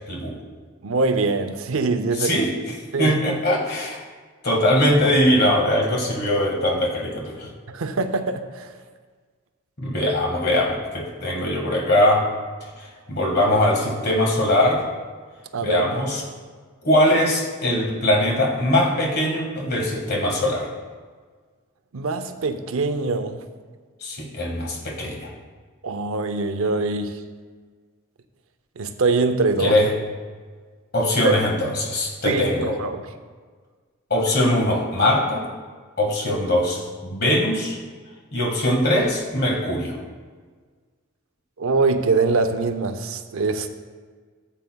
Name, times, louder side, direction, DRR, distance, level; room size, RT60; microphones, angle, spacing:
voice 1, 0.1-0.4 2.2-4.0 4.4-7.5 9.8-12.2 12.8-14.8 15.6-16.2 16.8-20.7 24.0-25.3 29.6-29.9 30.9-32.8 34.1-35.4 36.0-37.8 38.3-40.0, left 1 dB, 45° left, -1 dB, 1.7 m, -21 dB
voice 2, 0.8-2.5 2.9-3.2 7.7-8.7 15.5-15.9 21.9-23.4 25.8-27.1 28.8-29.8 31.2-31.3 32.2-32.4 32.8-33.0 41.6-43.7, right 3 dB, 75° right, 9 dB, 0.6 m, -23 dB
13.0 x 8.1 x 2.3 m, 1.5 s
head